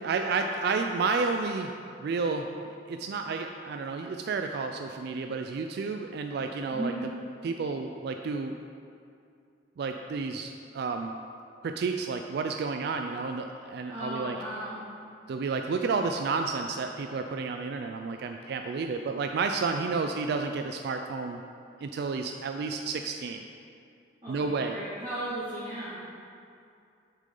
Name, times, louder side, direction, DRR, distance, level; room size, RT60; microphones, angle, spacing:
voice 1, 0.0-1.7 2.0-2.6 2.9-6.9 7.4-8.6 9.8-11.2 11.6-14.4 15.3-21.4 21.8-23.4 24.3-24.7, right 4 dB, 60° right, 5 dB, 0.3 m, -31 dB
voice 2, 13.9-14.8 19.8-20.0 24.2-26.0, right 1 dB, 25° right, -14 dB, 1.9 m, -36 dB
7.4 x 6.4 x 3.8 m, 2.5 s
head